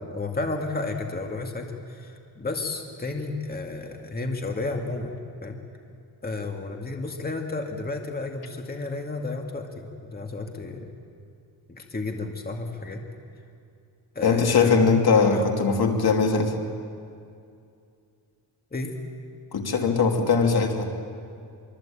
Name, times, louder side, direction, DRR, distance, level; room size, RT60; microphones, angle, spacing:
voice 1, 0.0-5.6 6.2-11.0 11.7-13.0 14.1-15.5 18.7-18.9, left 3 dB, 20° left, 2 dB, 2.2 m, -32 dB
voice 2, 14.2-16.5 19.5-20.9, left 5 dB, 60° left, 3 dB, 2.9 m, -21 dB
25.5 x 24.5 x 8.8 m, 2.4 s
wide cardioid pair, 140°, 42 cm